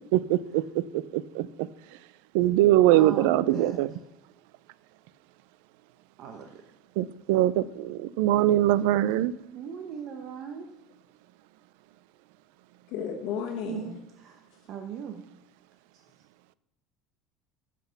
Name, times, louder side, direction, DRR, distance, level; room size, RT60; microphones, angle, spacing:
voice 1, 0.1-0.6 0.9-1.7 2.3-3.9 7.0-9.3, right 14 dB, 80° right, 19 dB, 0.4 m, -22 dB
voice 2, 2.9-4.0 6.2-6.6 9.5-10.7 13.7-15.2, right 7 dB, 50° right, 4 dB, 0.9 m, -39 dB
voice 3, 12.9-13.9, left 7 dB, 65° left, 2 dB, 1.3 m, -33 dB
9.7 x 6.0 x 5.7 m, 0.89 s
cardioid pair, 150°, 0 cm